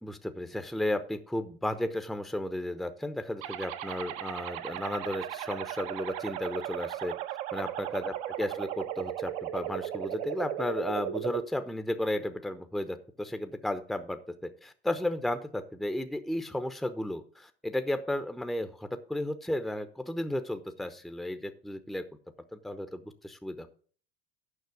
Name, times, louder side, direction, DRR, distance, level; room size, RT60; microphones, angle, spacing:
voice 1, 0.0-7.1 7.5-22.0 22.5-23.7, left 1 dB, ahead, 9 dB, 0.9 m, -34 dB
sound 1, 3.4-11.4, right 11 dB, 55° right, 1.2 m, -36 dB
9.8 x 6.2 x 6.0 m, 0.42 s
hypercardioid pair, 80°, 31 cm